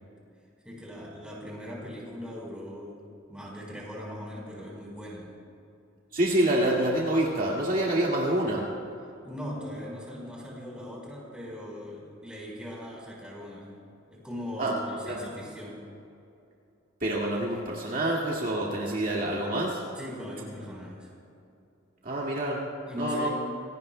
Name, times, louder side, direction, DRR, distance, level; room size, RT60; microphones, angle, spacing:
voice 1, 0.6-3.0 3.3-5.3 9.2-13.7 14.1-15.8 20.0-21.1 22.9-23.3, left 1 dB, 5° right, -4 dB, 4.2 m, -39 dB
voice 2, 6.1-8.7 14.6-14.7 15.0-15.2 17.0-19.8 22.0-22.6 23.0-23.3, right 1 dB, 45° right, -4 dB, 2.0 m, -27 dB
27.0 x 17.5 x 2.2 m, 2.7 s
head